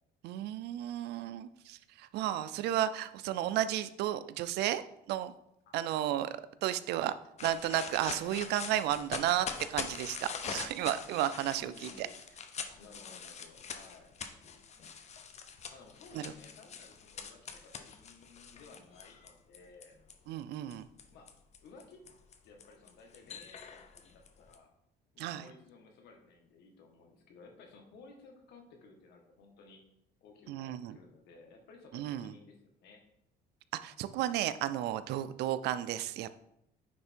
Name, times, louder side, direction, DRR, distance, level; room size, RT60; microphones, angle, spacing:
voice 1, 0.2-4.8 5.1-5.3 5.7-7.1 7.4-12.1 16.1-16.3 20.3-20.8 25.2-25.5 30.5-31.0 31.9-32.3 33.8-36.3, right 12 dB, 80° right, 14 dB, 0.5 m, -33 dB
voice 2, 5.6-6.0 11.6-12.2 12.7-14.2 15.7-19.9 21.1-21.3 21.6-22.0 22.4-24.7 25.1-29.9 30.2-33.0, left 4 dB, 80° left, 3 dB, 1.6 m, -56 dB
sound 1, 7.4-20.1 20.7-24.6, left 6 dB, 40° left, 0.8 m, -44 dB
9.4 x 3.4 x 4.5 m, 0.79 s
cardioid pair, 110°, 17 cm